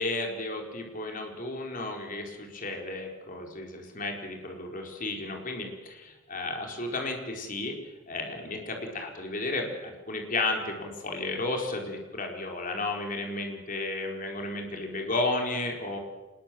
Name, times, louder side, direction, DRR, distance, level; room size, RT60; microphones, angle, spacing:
voice 1, 0.0-7.8 8.1-16.0, left 2 dB, 40° left, 2 dB, 4.5 m, -33 dB
26.0 x 21.0 x 7.8 m, 1.1 s
head